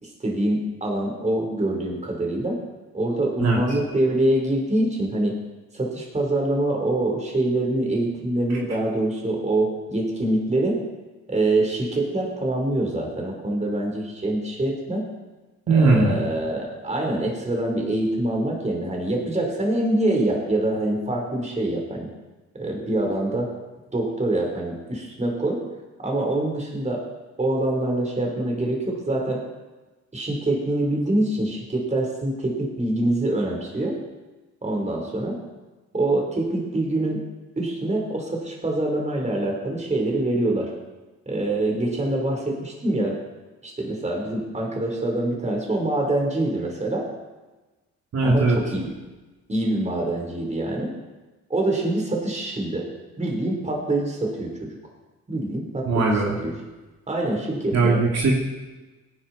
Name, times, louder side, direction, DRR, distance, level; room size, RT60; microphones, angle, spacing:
voice 1, 0.0-2.6 2.9-5.3 5.7-10.8 11.3-15.1 15.7-22.1 22.6-23.5 23.9-25.7 26.0-27.1 27.4-29.4 30.1-34.0 34.6-35.4 35.9-37.3 37.6-40.7 41.3-43.2 43.6-47.1 48.2-48.9 49.5-50.9 51.5-52.9 53.2-54.8 55.3-56.5 57.1-58.1, right 1 dB, 25° right, 0 dB, 4.0 m, -25 dB
voice 2, 15.7-16.2 48.1-48.6 55.8-56.4 57.7-58.3, right 3 dB, 60° right, -2 dB, 2.8 m, -19 dB
17.0 x 10.5 x 4.3 m, 1.2 s
cardioid pair, 90°, 30 cm